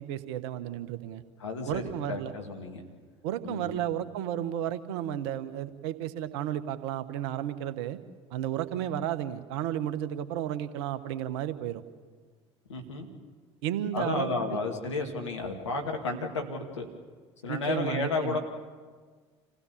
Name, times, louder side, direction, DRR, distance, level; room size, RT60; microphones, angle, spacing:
voice 1, 0.0-1.2 1.7-2.3 3.2-8.0 8.3-11.8 13.6-14.6 17.5-18.4, right 11 dB, 70° right, 12 dB, 1.1 m, -33 dB
voice 2, 1.4-2.8 3.4-3.7 12.7-13.1 13.9-16.9 17.4-18.4, left 3 dB, 85° left, 2 dB, 2.2 m, -32 dB
27.5 x 16.0 x 7.1 m, 1.5 s
figure-of-eight pair, 65°, 15 cm